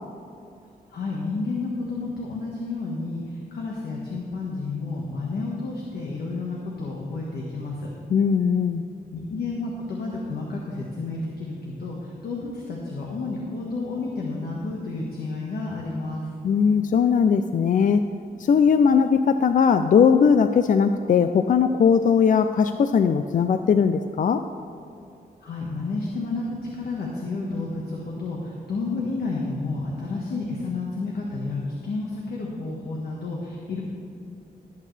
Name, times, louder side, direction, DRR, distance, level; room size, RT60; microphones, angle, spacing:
voice 1, 0.9-7.9 9.1-16.3 25.4-33.8, left 3 dB, 85° left, -2 dB, 1.5 m, -31 dB
voice 2, 8.1-8.8 16.4-18.0 18.4-24.4, left 6 dB, 55° left, 9 dB, 0.4 m, -19 dB
18.0 x 8.7 x 3.3 m, 2.8 s
cardioid pair, 90°, 16 cm